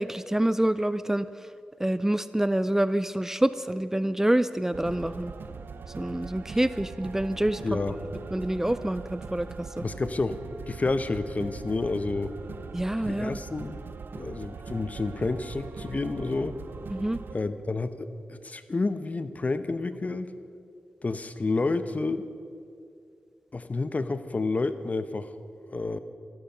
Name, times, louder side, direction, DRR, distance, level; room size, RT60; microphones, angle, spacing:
voice 1, 0.0-1.5 1.8-5.3 6.0-7.6 8.3-9.9 12.7-13.4 16.9-17.2, right 1 dB, 10° right, 14 dB, 0.4 m, -27 dB
sound 1, 4.7-17.4, right 5 dB, 70° right, 0.6 m, -41 dB
voice 2, 7.6-8.0 9.8-10.4 10.7-12.3 13.0-13.8 14.1-16.6 17.3-20.3 21.0-22.3 23.5-25.3 25.7-26.0, left 3 dB, 40° left, 11 dB, 0.8 m, -29 dB
14.5 x 12.5 x 5.7 m, 2.3 s
cardioid pair, 50°, 4 cm